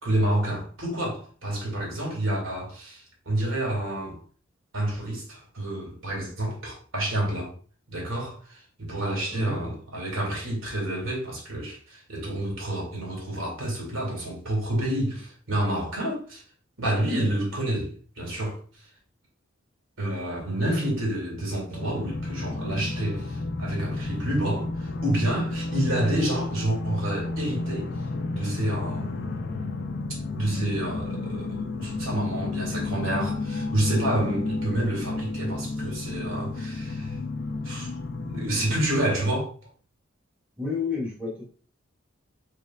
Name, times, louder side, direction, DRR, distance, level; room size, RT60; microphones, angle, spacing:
voice 1, 0.0-4.2 4.7-7.5 7.9-16.4 16.8-18.6 20.0-27.9 28.3-29.1 30.4-37.2 37.6-39.7, right 1 dB, 80° right, 2.2 m, -29 dB
sound 1, 21.8-39.1, left 2 dB, 55° left, 0.5 m, -31 dB
voice 2, 40.6-41.4, left 4 dB, 5° right, 1.7 m, -30 dB
6.6 x 3.3 x 2.4 m
head